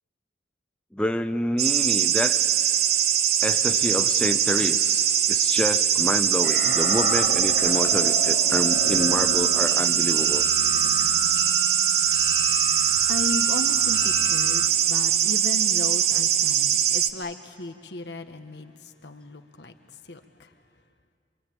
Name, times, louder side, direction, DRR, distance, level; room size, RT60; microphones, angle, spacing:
voice 1, 0.9-2.5 3.4-5.0 5.3-10.4, left 1 dB, 5° left, 8 dB, 0.6 m, -28 dB
sound 1, 1.6-17.1, right 10 dB, 60° right, 1.0 m, -22 dB
sound 2, 6.4-14.7, left 3 dB, 60° left, 1.0 m, -33 dB
voice 2, 13.1-18.7 19.0-19.7 20.1-20.5, left 2 dB, 75° left, 7 dB, 1.4 m, -35 dB
25.5 x 24.0 x 8.8 m, 2.4 s
head